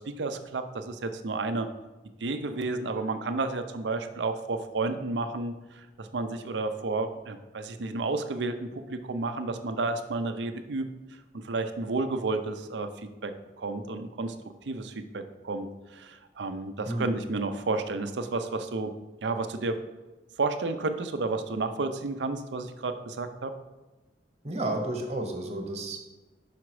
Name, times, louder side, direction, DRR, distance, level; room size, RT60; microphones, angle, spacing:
voice 1, 0.2-1.7 2.2-10.9 11.3-14.4 14.7-18.9 19.2-19.8 20.4-23.5, right 3 dB, 85° right, 8 dB, 0.6 m, -31 dB
voice 2, 16.9-17.2 24.4-26.0, right 1 dB, 40° right, 3 dB, 1.1 m, -31 dB
5.9 x 5.0 x 4.7 m, 1.1 s
head